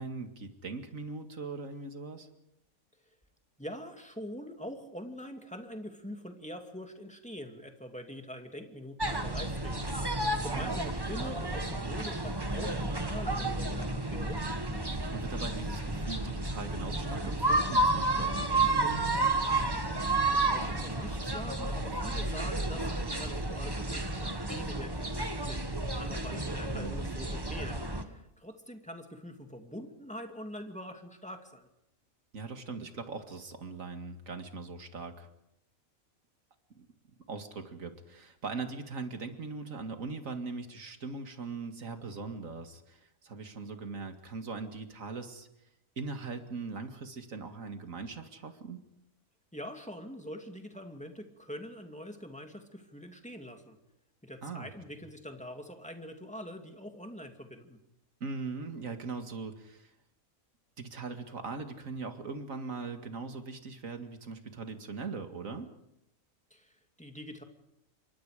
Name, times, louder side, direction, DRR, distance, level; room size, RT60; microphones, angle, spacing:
voice 1, 0.0-2.3 10.5-10.8 11.0-11.2 14.9-19.2 26.7-27.2 32.3-35.3 36.8-36.9 37.3-45.5 46.0-48.8 54.4-54.7 58.2-59.9 60.8-65.7, right 4 dB, 70° right, 6 dB, 2.4 m, -40 dB
voice 2, 3.6-14.4 20.3-31.7 49.5-53.8 54.2-57.8 66.5-67.4, equal, 5° left, 4 dB, 2.4 m, -44 dB
sound 1, 9.0-28.0, right 2 dB, 15° right, 1.6 m, -31 dB
28.0 x 24.0 x 5.0 m, 0.81 s
omnidirectional pair, 1.4 m